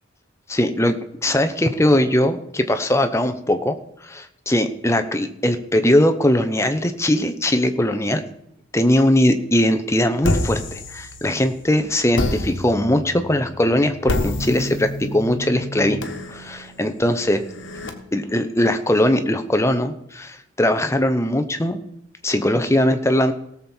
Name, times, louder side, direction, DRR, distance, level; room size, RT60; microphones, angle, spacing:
voice 1, 0.5-3.8 4.0-8.2 8.7-17.4 18.1-21.8 22.2-23.3, left 1 dB, 15° left, 8 dB, 0.8 m, -20 dB
sound 1, 10.2-11.6 12.1-17.9, left 1 dB, 65° left, 1.4 m, -28 dB
17.5 x 7.2 x 4.4 m, 0.79 s
head